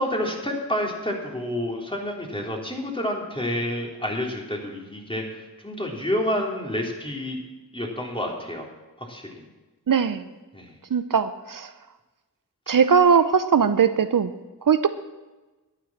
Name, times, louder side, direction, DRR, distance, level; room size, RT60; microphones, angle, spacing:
voice 1, 0.0-7.4 7.7-8.7 9.0-9.3 10.5-10.7 12.7-12.8, left 1 dB, 15° left, 0 dB, 3.4 m, -29 dB
voice 2, 9.9-10.2 10.9-11.7 12.7-14.3 14.7-14.9, right 6 dB, 65° right, 11 dB, 0.7 m, -19 dB
12.0 x 9.1 x 7.2 m, 1.2 s
cardioid pair, 45°, 36 cm